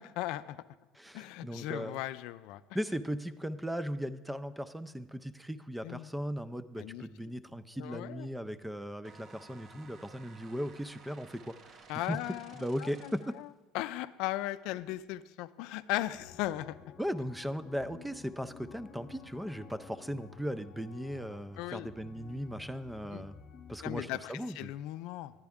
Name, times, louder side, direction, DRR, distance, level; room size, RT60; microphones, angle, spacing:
voice 1, 0.2-0.6 1.1-2.6 5.8-6.1 6.8-7.0 7.8-8.3 11.9-13.5 13.7-16.7 21.6-21.9 23.1-23.3 23.8-25.3, left 15 dB, 70° left, 14 dB, 0.4 m, -37 dB
voice 2, 0.9-2.0 2.7-12.2 12.6-13.4 17.0-23.4 23.7-24.7, equal, 5° right, 13 dB, 0.4 m, -38 dB
sound 1, 9.0-13.5, right 4 dB, 40° right, 0.7 m, -55 dB
sound 2, 16.1-24.0, left 6 dB, 40° left, 0.7 m, -53 dB
10.5 x 10.0 x 3.5 m, 1.2 s
cardioid pair, 135°, 0 cm